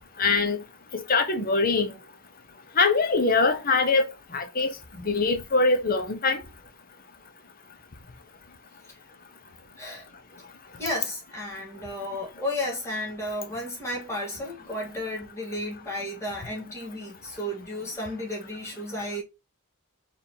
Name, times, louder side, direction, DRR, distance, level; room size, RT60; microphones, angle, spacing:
voice 1, 0.2-0.6 0.9-1.9 2.8-4.1 4.3-4.7 5.0-6.4, left 3 dB, 45° left, 0.9 m, -23 dB
voice 2, 10.8-19.2, left 1 dB, 15° left, 1.9 m, -33 dB
4.2 x 3.6 x 2.8 m
head